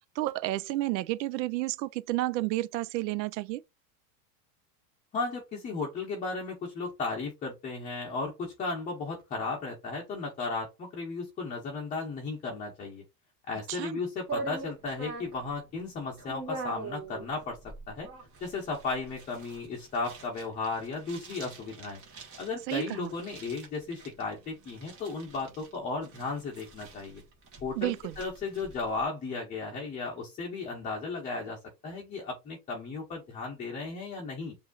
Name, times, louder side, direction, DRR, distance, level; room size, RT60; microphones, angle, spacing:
voice 1, 0.2-3.6 13.7-14.0 22.7-23.1 27.8-28.2, right 17 dB, 85° right, 0.6 m, -31 dB
voice 2, 5.1-13.0 13.5-18.1 18.4-22.0 22.4-27.2 27.6-34.5, left 4 dB, 15° left, 0.8 m, -35 dB
sound 1, 14.3-29.0, right 3 dB, 30° right, 1.3 m, -43 dB
7.7 x 2.7 x 2.4 m
supercardioid pair, 165°, 49 cm